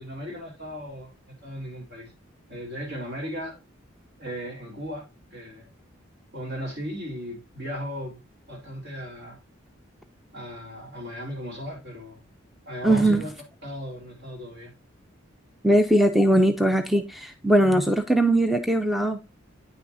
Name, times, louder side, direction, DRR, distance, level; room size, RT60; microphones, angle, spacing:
voice 1, 0.0-2.1 2.5-3.6 4.2-5.7 6.3-8.2 8.5-9.4 10.3-12.2 12.7-13.3 13.6-14.7, equal, 60° right, 3.9 m, -36 dB
voice 2, 12.8-13.2 15.6-19.3, right 1 dB, ahead, 0.5 m, -20 dB
9.5 x 5.9 x 2.6 m
head